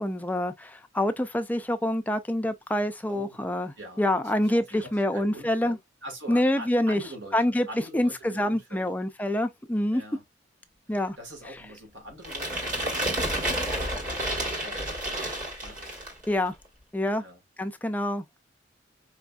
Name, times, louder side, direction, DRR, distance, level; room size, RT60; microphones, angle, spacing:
voice 1, 0.0-5.8 6.3-7.0 7.3-7.7 7.9-10.0 10.9-11.2 16.3-16.5 16.9-17.2 17.6-18.4, left 1 dB, 10° left, 0.3 m, -26 dB
voice 2, 3.1-3.4 3.8-9.0 9.9-10.2 10.9-15.8 17.2-17.4, right 1 dB, 85° right, 1.5 m, -44 dB
sound 1, 12.2-16.3, right 1 dB, 45° right, 1.3 m, -30 dB
4.7 x 2.6 x 2.2 m
head